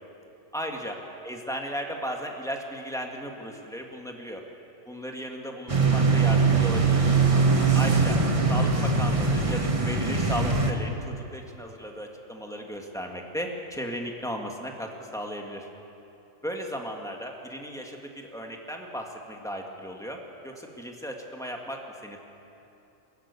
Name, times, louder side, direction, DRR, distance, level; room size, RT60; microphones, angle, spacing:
voice 1, 0.5-1.0 1.2-4.4 4.9-7.0 7.7-8.2 8.5-15.7 16.4-22.2, equal, ahead, 1 dB, 1.9 m, -35 dB
sound 1, 5.7-10.7, right 4 dB, 25° right, 1.3 m, -22 dB
21.5 x 17.5 x 8.4 m, 2.9 s
omnidirectional pair, 1.6 m